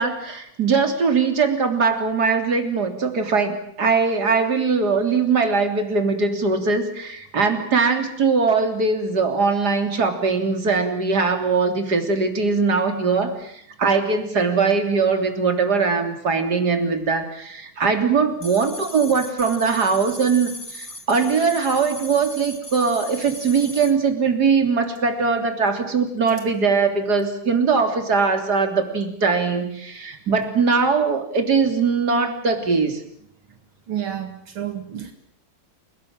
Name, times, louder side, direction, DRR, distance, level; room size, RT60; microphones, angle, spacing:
voice 1, 0.0-33.0, right 5 dB, 50° right, 6 dB, 3.9 m, -21 dB
sound 1, 18.4-23.9, left 1 dB, 10° left, 2.0 m, -37 dB
voice 2, 33.9-35.1, right 10 dB, 80° right, 7 dB, 2.8 m, -30 dB
29.0 x 19.0 x 8.9 m, 0.69 s
omnidirectional pair, 2.2 m